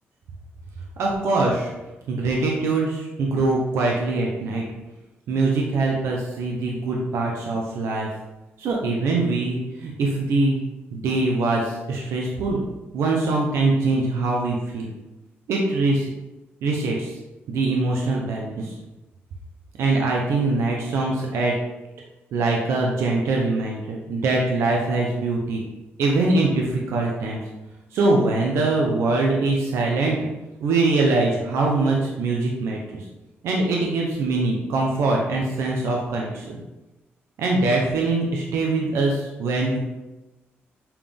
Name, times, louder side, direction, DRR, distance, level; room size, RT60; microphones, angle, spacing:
voice 1, 1.0-1.7 2.1-4.6 5.3-8.1 8.6-10.6 10.9-12.6 12.9-14.9 15.5-16.1 16.6-17.2 17.5-18.7 19.8-21.6 22.3-25.6 26.0-27.4 27.9-30.2 30.6-33.0 33.4-36.6 37.4-39.8, right 3 dB, 85° right, -1 dB, 0.9 m, -23 dB
7.3 x 3.5 x 3.7 m, 1.0 s
cardioid pair, 110°, 4 cm